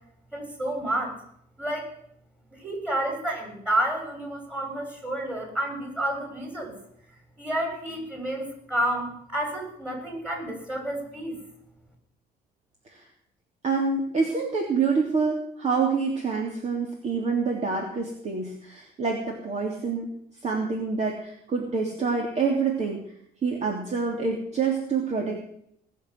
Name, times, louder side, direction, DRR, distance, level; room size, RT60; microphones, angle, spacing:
voice 1, 0.3-1.2 1.6-1.9 2.6-6.7 7.4-11.4, right 1 dB, 5° right, 2 dB, 6.9 m, -30 dB
voice 2, 13.6-20.1 20.4-23.0 23.4-25.5, right 4 dB, 40° right, 1 dB, 3.3 m, -27 dB
20.0 x 7.1 x 9.6 m, 0.70 s
cardioid pair, 110°, 17 cm